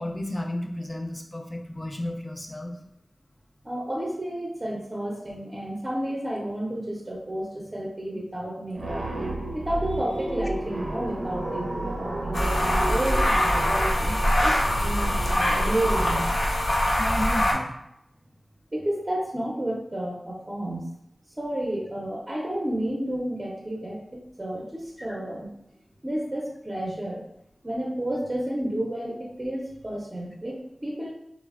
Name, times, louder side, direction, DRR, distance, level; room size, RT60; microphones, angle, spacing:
voice 1, 0.0-2.8 17.0-17.8 25.0-25.2, left 1 dB, 25° left, 3 dB, 0.4 m, -32 dB
voice 2, 3.6-16.3 18.7-20.9 21.4-25.5 26.0-27.2 27.6-31.1, right 1 dB, 25° right, -3 dB, 0.6 m, -31 dB
sound 1, 8.8-16.1, right 1 dB, 75° right, 0.5 m, -32 dB
sound 2, 12.3-17.5, left 1 dB, 75° left, 0.6 m, -23 dB
3.1 x 2.0 x 2.4 m, 0.79 s
wide cardioid pair, 55°, 0 cm